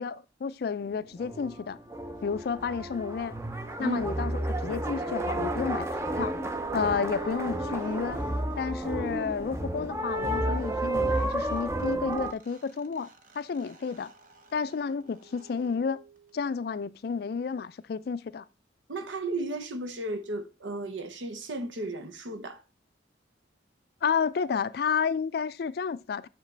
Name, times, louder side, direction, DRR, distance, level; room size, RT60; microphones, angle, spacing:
voice 1, 0.0-1.8 2.2-3.3 3.8-5.9 6.2-6.3 6.7-8.2 8.6-13.1 13.3-14.1 14.5-16.0 16.3-18.5 24.0-26.3, left 6 dB, 55° left, 0.3 m, -31 dB
sound 1, 0.9-12.3, right 1 dB, 15° right, 0.5 m, -31 dB
sound 2, 3.6-8.9 10.8-10.9 11.1-16.6, right 5 dB, 45° right, 0.8 m, -45 dB
voice 2, 18.9-22.6, right 1 dB, 80° right, 0.9 m, -34 dB
7.2 x 6.5 x 3.3 m
head